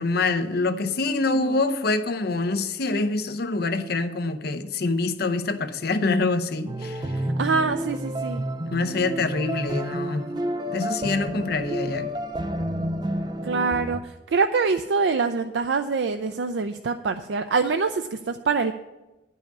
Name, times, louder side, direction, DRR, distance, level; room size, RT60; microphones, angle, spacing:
voice 1, 0.0-7.0 8.7-10.3 10.7-12.1, left 3 dB, 60° left, 0.7 m, -25 dB
voice 2, 1.3-1.6 7.4-8.5 13.4-18.7, right 4 dB, 80° right, 0.5 m, -25 dB
sound 1, 6.7-14.0, right 1 dB, 25° right, 0.5 m, -30 dB
10.5 x 5.6 x 8.4 m
head